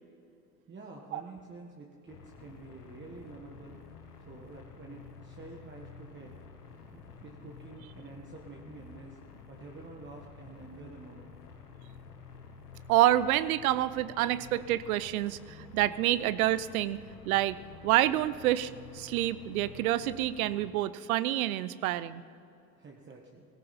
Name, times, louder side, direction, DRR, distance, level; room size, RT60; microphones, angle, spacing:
voice 1, 0.7-3.8 4.3-6.4 6.9-9.2 9.5-11.4 22.8-23.5, right 3 dB, 25° right, 0 dB, 1.7 m, -48 dB
sound 1, 2.1-20.7, left 5 dB, 85° left, 1.7 m, -51 dB
voice 2, 12.9-17.6 17.8-22.2, right 14 dB, 70° right, 17 dB, 0.7 m, -28 dB
18.0 x 17.5 x 4.3 m, 2.7 s
hypercardioid pair, 80°, 45 cm